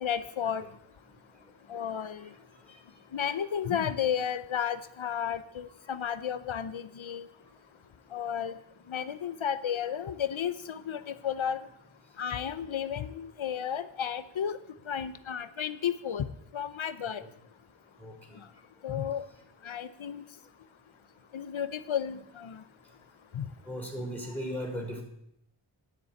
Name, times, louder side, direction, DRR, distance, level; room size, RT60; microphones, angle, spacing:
voice 1, 0.0-0.6 1.7-2.2 3.1-7.2 8.1-8.5 8.9-11.7 12.2-14.6 14.9-16.2 16.5-17.2 18.8-19.2 19.6-20.2 21.3-22.6 23.3-23.5, left 8 dB, 85° left, 13 dB, 0.8 m, -33 dB
voice 2, 18.0-18.4 22.1-22.2 23.7-25.0, equal, 5° left, -2 dB, 3.6 m, -38 dB
10.5 x 6.8 x 8.4 m, 0.77 s
wide cardioid pair, 60°, 46 cm